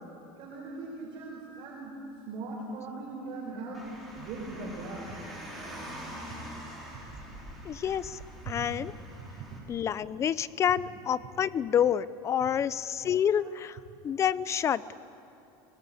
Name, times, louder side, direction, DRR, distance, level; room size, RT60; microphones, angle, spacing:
voice 1, 0.4-1.9 2.3-3.9 4.2-5.2 13.3-13.5, right 3 dB, 45° right, -2 dB, 4.5 m, -40 dB
Car, 3.7-9.6, right 1 dB, ahead, 4.9 m, -44 dB
voice 2, 7.6-8.2 8.5-8.9 9.7-13.8 14.0-14.8, left 9 dB, 25° left, 18 dB, 0.5 m, -28 dB
25.5 x 19.0 x 8.5 m, 2.8 s
cardioid pair, 160°, 13 cm